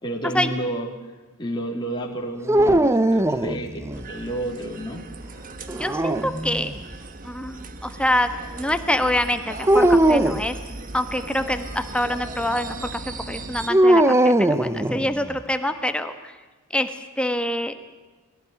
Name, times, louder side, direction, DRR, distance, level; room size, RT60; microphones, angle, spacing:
voice 1, 0.0-0.9 1.4-5.0, right 1 dB, 20° left, -1 dB, 3.1 m, -30 dB
sound 1, 2.5-4.0 5.7-6.8 9.7-10.5 13.7-15.4, right 1 dB, 15° right, 0.6 m, -19 dB
sound 2, 3.9-13.7, right 2 dB, 40° right, 1.4 m, -37 dB
voice 2, 5.7-6.7 7.2-10.5 10.9-12.7 13.3-16.4 16.7-17.7, left 1 dB, 5° left, 8 dB, 1.3 m, -25 dB
22.0 x 16.5 x 9.4 m, 1.2 s
head